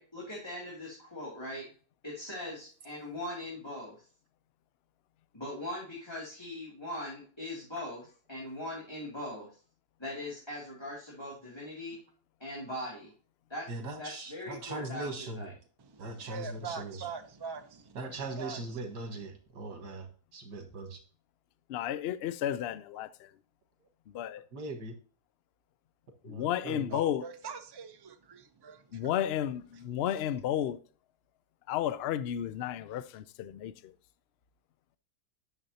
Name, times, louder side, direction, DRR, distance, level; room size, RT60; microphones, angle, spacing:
voice 1, 0.0-1.6 2.0-3.9 5.3-9.5 10.0-12.0 12.4-13.1 13.5-15.5, left 1 dB, 15° left, 2.5 m, -40 dB
voice 2, 13.7-15.5 16.0-17.0 18.0-20.1 20.3-21.0 24.5-24.9 26.3-27.0, right 2 dB, 90° right, 2.1 m, -40 dB
voice 3, 15.8-19.3 26.9-29.1, right 6 dB, 35° right, 0.4 m, -44 dB
voice 4, 21.7-23.3 24.1-24.4 26.2-27.3 28.9-30.8 31.7-33.9, left 11 dB, 85° left, 0.5 m, -33 dB
9.7 x 6.8 x 2.8 m
omnidirectional pair, 1.7 m